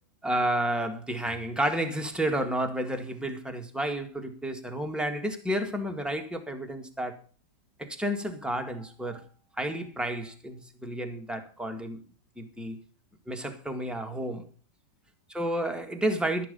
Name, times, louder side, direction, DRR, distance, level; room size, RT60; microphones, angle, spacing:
voice 1, 0.2-7.2 7.8-9.2 9.6-12.0 12.4-12.8 13.3-14.5 15.3-16.5, right 1 dB, ahead, 1.6 m, -31 dB
12.0 x 10.5 x 5.5 m
omnidirectional pair, 2.0 m